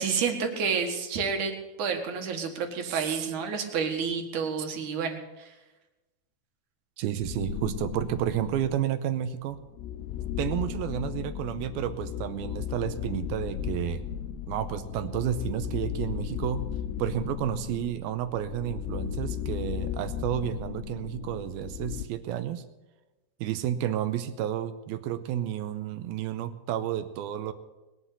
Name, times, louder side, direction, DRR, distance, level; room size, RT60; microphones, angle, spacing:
voice 1, 0.0-5.5, right 6 dB, 55° right, 4 dB, 2.6 m, -30 dB
voice 2, 2.8-3.3 4.6-4.7 7.0-9.6 10.4-14.0 14.5-16.7 17.0-22.6 23.4-27.5, right 11 dB, 80° right, 11 dB, 2.4 m, -31 dB
sound 1, 7.2-8.9 9.5-22.1, left 9 dB, 90° left, 3.0 m, -35 dB
20.0 x 8.1 x 8.4 m, 1.1 s
omnidirectional pair, 4.8 m